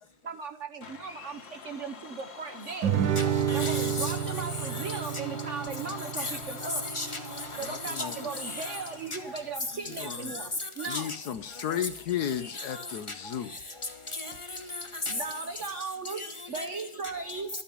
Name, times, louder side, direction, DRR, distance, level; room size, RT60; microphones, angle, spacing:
voice 1, 0.2-3.0 3.5-6.9 7.6-11.1 15.1-16.2 16.5-17.5, right 4 dB, 50° right, 1.0 m, -37 dB
Domestic sounds home sounds, 0.8-9.5, left 5 dB, 45° left, 1.5 m, -46 dB
Guitar, 2.8-7.9, right 8 dB, 75° right, 1.5 m, -31 dB
voice 2, 3.2-4.2 4.7-5.0 6.2-8.8 9.8-11.0 11.7-11.8 12.4-12.9 13.8-15.1 16.1-16.9 17.1-17.4, left 2 dB, 20° left, 1.0 m, -37 dB
voice 3, 7.6-8.1 10.0-10.3 10.9-13.5, left 10 dB, 70° left, 1.2 m, -34 dB
13.0 x 9.2 x 6.9 m
omnidirectional pair, 1.9 m